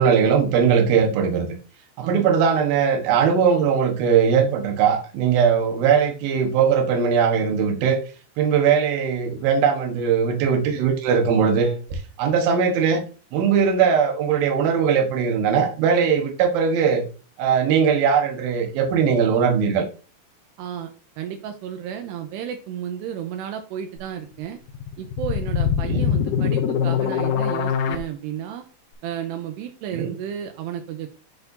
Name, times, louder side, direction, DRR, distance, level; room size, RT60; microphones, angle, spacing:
voice 1, 0.0-1.5 2.0-8.0 8.4-11.8 12.2-13.0 13.3-17.0 17.4-19.9 25.9-26.0 29.9-30.1, right 6 dB, 70° right, 2.9 m, -20 dB
voice 2, 20.6-20.9 21.2-24.6 25.0-28.7 29.0-31.1, right 9 dB, 85° right, 2.7 m, -32 dB
sound 1, 24.7-28.0, left 8 dB, 75° left, 2.3 m, -23 dB
10.5 x 4.4 x 2.7 m
omnidirectional pair, 4.9 m